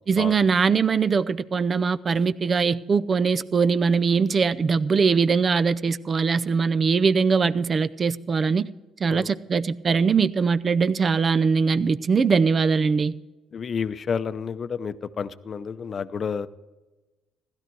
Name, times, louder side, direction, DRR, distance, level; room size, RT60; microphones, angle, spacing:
voice 1, 0.1-8.7 9.0-13.1, right 5 dB, 40° right, 0.6 m, -21 dB
voice 2, 13.5-16.5, left 6 dB, 45° left, 0.7 m, -30 dB
16.0 x 12.0 x 4.7 m
supercardioid pair, 75°, 0 cm